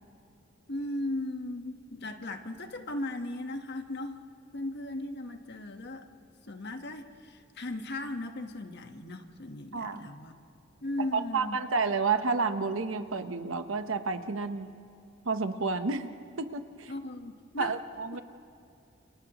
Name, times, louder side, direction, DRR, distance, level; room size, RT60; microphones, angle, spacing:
voice 1, 0.7-4.2 4.5-6.1 6.5-10.4 10.8-11.6 16.9-17.7, left 1 dB, 60° left, 6 dB, 1.4 m, -37 dB
voice 2, 9.7-10.1 11.1-14.7 15.2-16.1 16.4-16.9 17.6-18.2, right 4 dB, 85° right, 9 dB, 1.1 m, -30 dB
29.5 x 29.0 x 3.1 m, 2.4 s
head